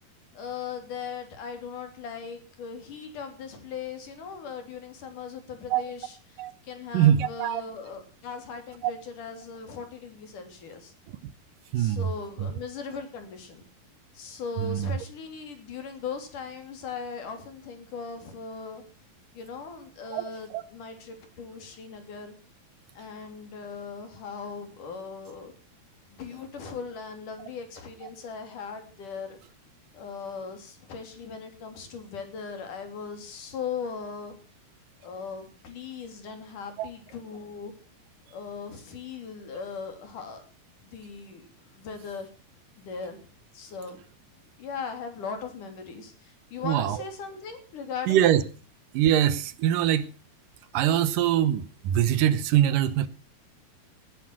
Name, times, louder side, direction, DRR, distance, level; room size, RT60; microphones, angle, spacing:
voice 1, 0.3-10.9 11.8-13.6 14.1-18.8 19.3-22.3 23.0-25.5 26.1-29.4 29.9-34.3 35.0-37.7 38.3-40.4 40.8-41.5 41.7-42.3 42.8-43.2 43.5-44.0 44.6-48.3, left 5 dB, 60° left, 4.5 m, -39 dB
voice 2, 6.9-7.6 8.8-8.9 11.7-12.1 12.4-12.5 14.6-14.9 20.1-20.2 20.5-20.6 36.8-36.9 46.6-47.0 48.1-48.4 48.9-50.1 50.7-53.1, right 11 dB, 70° right, 2.4 m, -23 dB
19.0 x 10.0 x 6.0 m
omnidirectional pair, 4.2 m